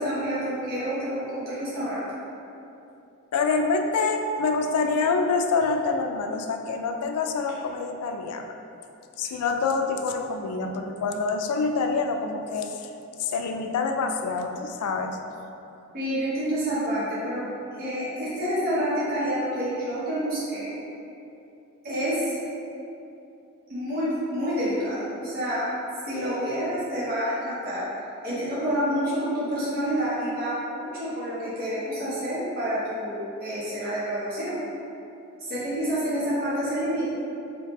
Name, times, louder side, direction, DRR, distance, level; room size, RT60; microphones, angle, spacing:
voice 1, 0.0-2.0 15.9-17.4 17.7-20.7 21.8-22.3 23.7-25.7 26.1-27.9 28.2-34.6 35.4-37.1, equal, 40° right, -10 dB, 0.8 m, -28 dB
voice 2, 3.3-8.5 9.2-12.9 13.2-15.2, left 4 dB, 85° left, 5 dB, 0.3 m, -26 dB
3.3 x 2.7 x 3.0 m, 2.8 s
head